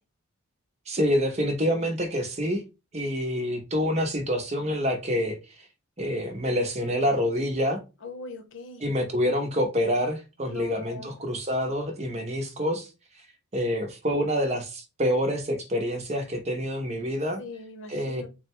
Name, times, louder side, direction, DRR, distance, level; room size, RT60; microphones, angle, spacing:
voice 1, 0.9-2.6 2.9-5.4 6.0-7.8 8.8-12.9 13.5-17.4 17.9-18.2, equal, 30° right, 0.8 m, -27 dB
voice 2, 8.0-8.8 10.4-11.2 17.4-18.3, left 3 dB, 60° left, 0.8 m, -40 dB
4.1 x 2.2 x 4.3 m
head